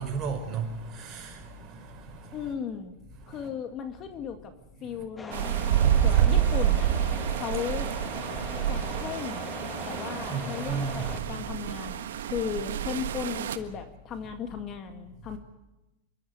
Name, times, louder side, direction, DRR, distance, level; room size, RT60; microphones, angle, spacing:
voice 1, 0.0-2.5 3.2-3.5 4.8-5.0 5.8-6.3 7.2-7.5 8.3-8.8 9.8-11.4 15.2-15.3, right 5 dB, 35° right, 5.5 m, -36 dB
voice 2, 2.3-3.0 3.3-4.5 4.8-6.9 7.4-7.9 8.7-9.5 9.9-15.4, left 7 dB, 35° left, 2.0 m, -36 dB
sound 1, 5.2-11.2, left 4 dB, 15° left, 1.6 m, -40 dB
sound 2, 5.3-13.6, right 10 dB, 85° right, 1.4 m, -28 dB
27.5 x 12.5 x 9.6 m
supercardioid pair, 130°, 0 cm